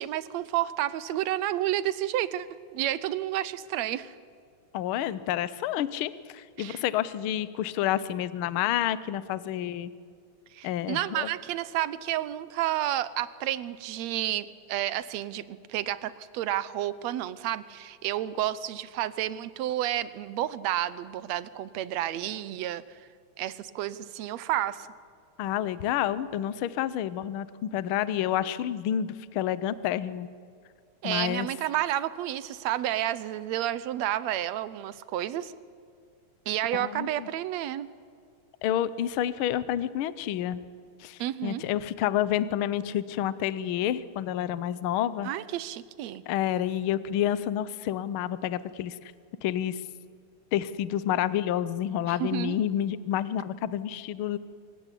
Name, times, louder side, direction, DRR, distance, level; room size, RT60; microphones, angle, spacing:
voice 1, 0.0-2.5 2.7-4.1 6.6-6.8 10.5-22.8 23.4-24.9 31.0-35.5 36.5-37.9 41.2-41.6 45.2-46.2 52.1-52.6, right 13 dB, 75° right, 16 dB, 1.8 m, -30 dB
voice 2, 4.7-9.9 10.6-11.3 25.4-30.3 31.0-31.5 36.7-37.3 38.6-40.6 41.0-45.3 46.3-49.1 49.4-49.8 50.5-54.4, left 11 dB, 90° left, 16 dB, 1.1 m, -29 dB
27.0 x 15.5 x 10.0 m, 2.2 s
omnidirectional pair, 3.4 m